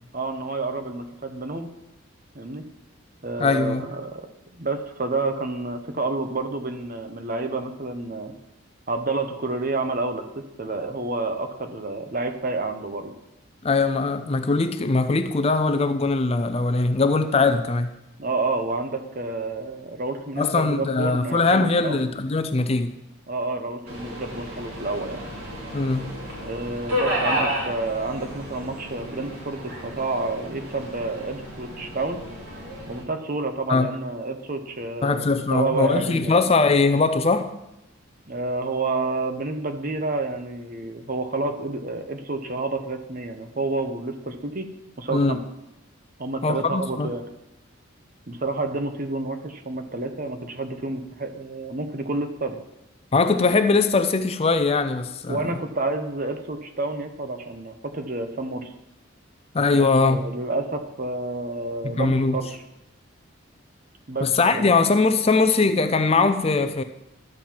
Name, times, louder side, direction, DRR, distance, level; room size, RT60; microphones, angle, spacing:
voice 1, 0.1-1.7 2.3-2.6 3.2-8.3 8.9-13.1 17.2-17.3 18.2-22.0 23.3-25.2 26.4-32.2 32.9-36.4 38.3-44.7 45.0-45.4 46.2-47.2 48.3-52.6 55.3-58.7 59.7-62.6 64.1-64.7, right 3 dB, 40° right, 0.8 m, -29 dB
voice 2, 3.4-3.8 13.6-17.9 20.4-23.0 25.7-26.2 33.7-33.9 35.0-37.5 45.1-45.4 46.4-47.1 53.1-55.5 59.5-60.2 61.9-62.4 64.2-66.8, left 3 dB, 30° left, 0.4 m, -21 dB
Subway metro underground, 23.9-33.0, equal, 90° right, 3.2 m, -32 dB
12.0 x 4.4 x 7.4 m
head